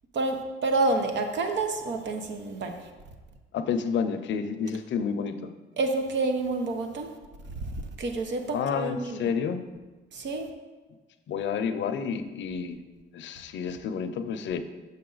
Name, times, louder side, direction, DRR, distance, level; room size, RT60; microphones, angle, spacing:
voice 1, 0.1-2.9 5.8-7.1 7.4-9.3 10.1-10.5, right 2 dB, 65° right, 5 dB, 0.9 m, -29 dB
voice 2, 3.5-5.5 8.5-9.6 11.3-12.8 13.1-14.6, left 6 dB, 65° left, 9 dB, 0.6 m, -30 dB
6.8 x 5.4 x 3.9 m, 1.2 s
cardioid pair, 90°, 20 cm